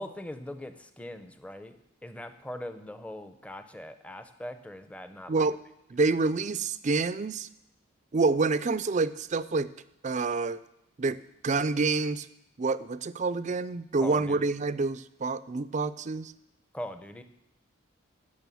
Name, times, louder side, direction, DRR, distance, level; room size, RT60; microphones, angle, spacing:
voice 1, 0.0-1.8 2.0-5.5 14.0-14.5 16.7-17.2, left 1 dB, 5° left, 9 dB, 0.6 m, -41 dB
voice 2, 5.9-7.5 8.1-9.7 10.0-10.6 11.0-11.2 11.4-12.3 12.6-16.3, right 3 dB, 35° right, 15 dB, 0.4 m, -27 dB
15.0 x 6.4 x 7.1 m, 0.83 s
head